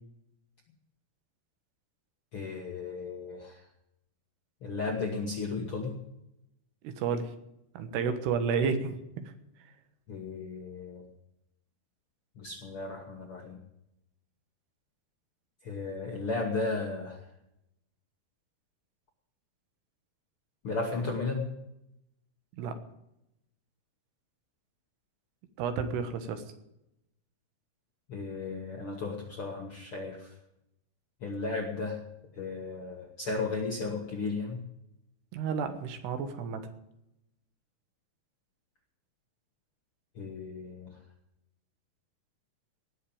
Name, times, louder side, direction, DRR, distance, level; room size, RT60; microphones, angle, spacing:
voice 1, 2.3-3.6 4.6-5.9 10.1-11.0 12.4-13.6 15.6-17.2 20.6-21.5 28.1-30.3 31.2-32.0 32.3-34.6 40.1-41.0, left 3 dB, 65° left, 1 dB, 1.4 m, -35 dB
voice 2, 6.8-7.3 7.7-9.2 22.6-22.7 25.6-26.4 35.3-36.6, right 6 dB, 85° right, 8 dB, 3.4 m, -31 dB
18.0 x 6.6 x 8.7 m, 0.85 s
omnidirectional pair, 4.6 m